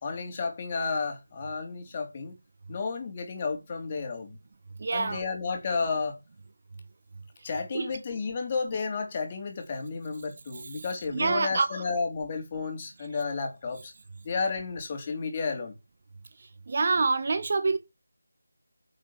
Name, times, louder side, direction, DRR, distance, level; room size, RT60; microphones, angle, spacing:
voice 1, 0.0-2.4 2.7-4.4 4.9-6.2 7.4-13.9 14.2-15.7, left 4 dB, 25° left, 3.2 m, -32 dB
voice 2, 4.8-5.2 7.7-7.9 10.7-10.8 11.1-11.8 16.7-17.8, right 4 dB, 40° right, 1.0 m, -26 dB
9.8 x 6.0 x 7.2 m
figure-of-eight pair, 165°, 0 cm